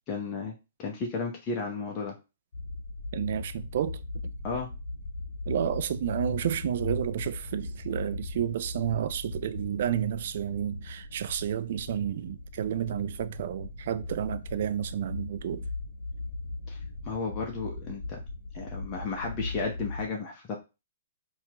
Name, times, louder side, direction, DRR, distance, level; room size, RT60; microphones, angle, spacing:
voice 1, 0.1-0.5 0.8-2.1 4.4-4.7 16.7-16.8 17.0-18.2 18.5-20.6, left 4 dB, 30° left, 0.8 m, -33 dB
sound 1, 2.5-20.0, left 2 dB, 65° left, 0.7 m, -38 dB
voice 2, 3.1-4.3 5.5-15.6, right 10 dB, 55° right, 0.3 m, -31 dB
4.2 x 2.4 x 2.9 m
figure-of-eight pair, 120°, 0 cm